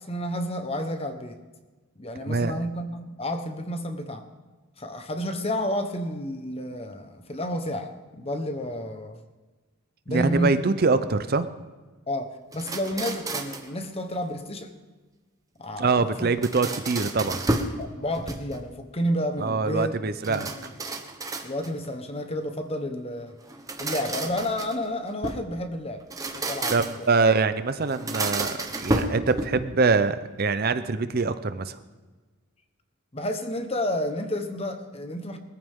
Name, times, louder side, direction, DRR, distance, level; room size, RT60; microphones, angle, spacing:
voice 1, 0.0-1.3 2.0-4.2 4.8-9.2 10.1-10.6 12.1-14.7 15.6-16.3 17.8-20.7 21.4-23.3 23.8-26.0 26.3-26.7 33.1-35.4, equal, 25° left, 7 dB, 1.1 m, -30 dB
voice 2, 2.3-2.6 10.1-11.5 15.8-17.4 19.4-20.5 26.7-31.8, right 4 dB, 45° right, 12 dB, 0.6 m, -24 dB
sound 1, 12.5-13.7 16.2-17.8 18.1-18.8 20.2-21.9 23.4-25.5 26.0-27.1 27.9-29.7, right 2 dB, 15° right, 1.0 m, -31 dB
21.0 x 14.5 x 3.7 m, 1.3 s
head